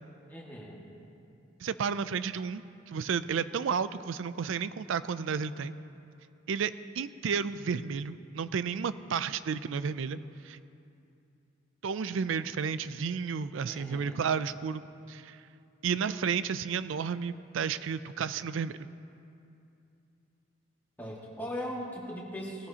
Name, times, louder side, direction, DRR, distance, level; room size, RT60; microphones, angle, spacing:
voice 1, 0.3-0.8 13.7-14.2 21.0-22.7, equal, 10° left, -5 dB, 1.9 m, -39 dB
voice 2, 1.6-5.7 6.5-10.6 11.8-14.8 15.1-15.4 15.8-18.7, right 6 dB, 75° right, 14 dB, 0.4 m, -32 dB
19.0 x 14.0 x 2.9 m, 2.7 s
head